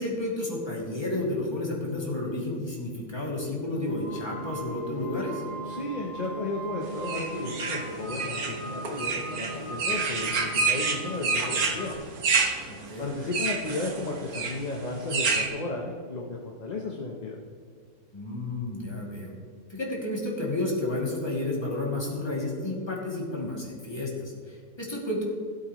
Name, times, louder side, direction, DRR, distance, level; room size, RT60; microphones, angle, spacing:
voice 1, 0.0-5.4 12.7-13.1 18.1-19.3 19.7-25.2, left 2 dB, 15° left, -5 dB, 2.6 m, -31 dB
sound 1, 3.7-11.9, right 1 dB, 10° right, 2.3 m, -38 dB
voice 2, 5.6-12.2 13.0-17.4, left 2 dB, 35° left, -1 dB, 0.9 m, -34 dB
sound 2, 7.1-15.5, right 4 dB, 80° right, 1.7 m, -28 dB
17.0 x 8.1 x 3.1 m, 2.1 s
omnidirectional pair, 1.5 m